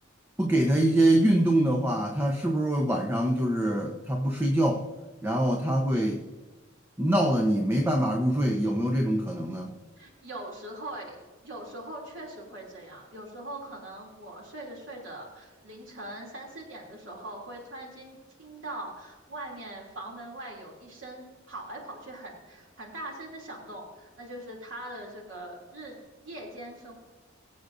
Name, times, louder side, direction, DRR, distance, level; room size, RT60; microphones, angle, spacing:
voice 1, 0.4-4.9 5.2-6.2 7.0-9.8, right 1 dB, 10° right, 2 dB, 0.9 m, -24 dB
voice 2, 10.0-26.9, right 1 dB, 75° right, -1 dB, 2.9 m, -41 dB
22.5 x 8.0 x 2.6 m, 1.3 s
head